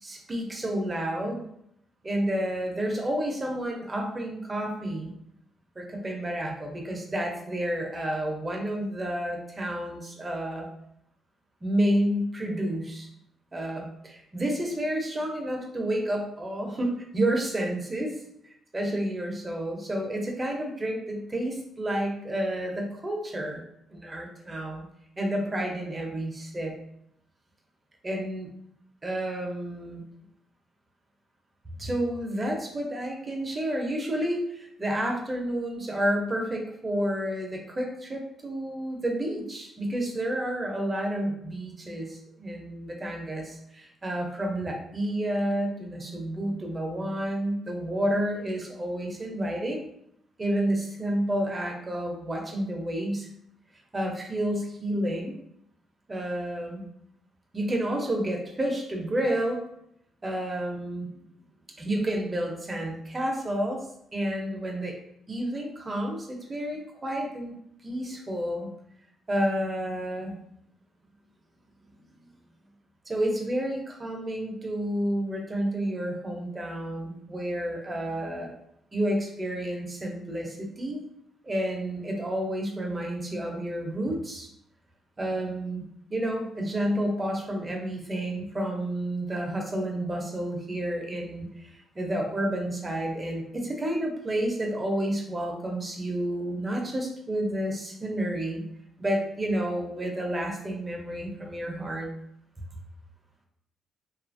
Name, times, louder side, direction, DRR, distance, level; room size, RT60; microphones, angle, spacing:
voice 1, 0.0-1.5 2.0-5.1 5.8-10.7 11.6-13.1 13.5-18.2 18.7-23.6 23.9-24.9 25.2-26.7 28.0-28.5 29.0-30.0 31.8-49.8 50.4-53.3 53.9-55.3 56.1-56.9 57.5-59.6 60.2-61.1 61.8-64.9 65.3-67.5 67.8-68.7 69.3-70.3 73.1-78.5 78.9-81.0 81.4-84.5 85.2-85.8 86.1-98.6 99.0-102.1, right 1 dB, 25° right, 1 dB, 0.7 m, -30 dB
2.7 x 2.4 x 2.5 m, 0.74 s
cardioid pair, 90°, 0 cm